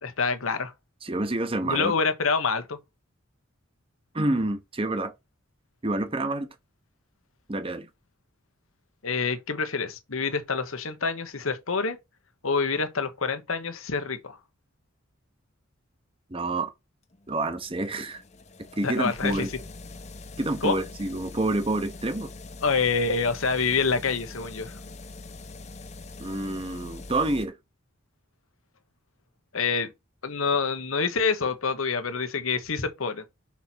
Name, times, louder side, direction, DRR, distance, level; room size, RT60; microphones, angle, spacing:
voice 1, 0.0-0.7 1.6-2.8 9.0-12.0 12.4-14.4 18.8-19.5 20.6-20.8 22.6-24.7 29.5-29.9 30.2-33.2, left 4 dB, 85° left, 1.2 m, -27 dB
voice 2, 1.0-1.9 4.1-5.1 5.8-6.5 7.5-7.9 16.3-16.7 17.3-18.2 18.8-19.5 20.4-22.3 26.2-27.6, right 2 dB, 25° right, 0.9 m, -28 dB
sound 1, 17.1-27.5, left 3 dB, 35° left, 0.8 m, -43 dB
5.8 x 4.2 x 6.1 m
head